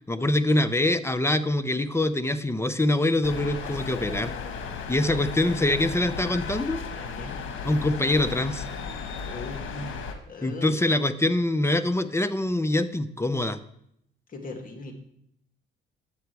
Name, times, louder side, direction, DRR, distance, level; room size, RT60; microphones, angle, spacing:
voice 1, 0.1-4.3 4.9-6.8 7.6-8.6 10.4-13.6, left 1 dB, 15° left, 12 dB, 0.6 m, -24 dB
sound 1, 3.2-10.1, left 5 dB, 75° left, 1.3 m, -35 dB
voice 2, 6.9-7.4 9.2-9.9 10.3-10.8 14.3-14.9, left 3 dB, 45° left, 4 dB, 2.1 m, -39 dB
10.0 x 7.9 x 4.6 m, 0.73 s
cardioid pair, 90°, 20 cm